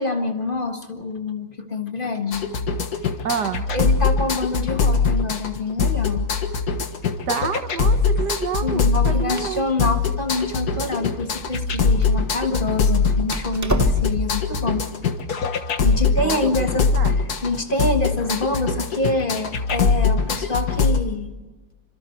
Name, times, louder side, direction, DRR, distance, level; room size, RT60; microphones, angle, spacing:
voice 1, 0.0-2.5 3.7-6.3 8.6-14.9 15.8-21.3, left 2 dB, 30° left, 5 dB, 1.8 m, -26 dB
sound 1, 2.3-21.0, left 5 dB, 70° left, 2.0 m, -22 dB
voice 2, 3.2-3.7 7.3-9.7 16.2-16.5 16.9-17.2, right 7 dB, 85° right, 9 dB, 1.9 m, -28 dB
Door, 8.9-14.4, right 1 dB, 15° right, 0.7 m, -31 dB
28.5 x 25.5 x 4.6 m, 1.2 s
omnidirectional pair, 1.7 m